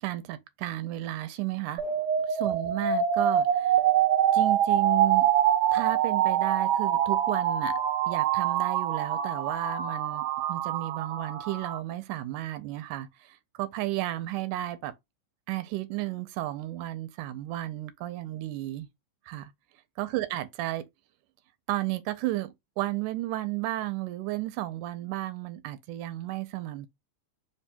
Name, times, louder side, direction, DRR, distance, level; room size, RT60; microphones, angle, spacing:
voice 1, 0.0-1.8 2.3-3.8 4.3-5.3 5.7-7.7 8.1-14.9 15.5-18.9 19.3-19.5 20.0-20.9 21.7-26.9, right 16 dB, 85° right, 2.1 m, -33 dB
sound 1, 1.8-11.8, right 10 dB, 70° right, 1.8 m, -25 dB
4.9 x 2.2 x 4.1 m
omnidirectional pair, 3.6 m